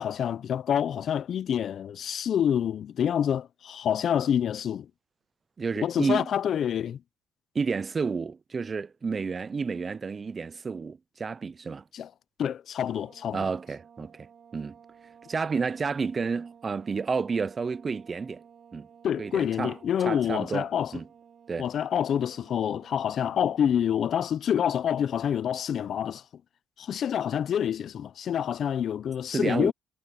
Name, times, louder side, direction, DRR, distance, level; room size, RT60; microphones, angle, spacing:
voice 1, 0.0-4.9 5.8-7.0 11.9-12.1 12.4-13.4 19.0-20.9 21.6-26.2 26.8-29.7, left 9 dB, 60° left, 0.6 m, -27 dB
voice 2, 5.6-6.3 7.5-11.8 13.3-14.3 14.5-14.7 15.3-18.4 18.7-18.9 19.2-19.8 20.1-21.1 21.5-21.7 29.3-29.7, right 5 dB, 35° right, 0.4 m, -30 dB
sound 1, 12.9-23.9, right 7 dB, 50° right, 3.5 m, -55 dB
cardioid pair, 90°, 0 cm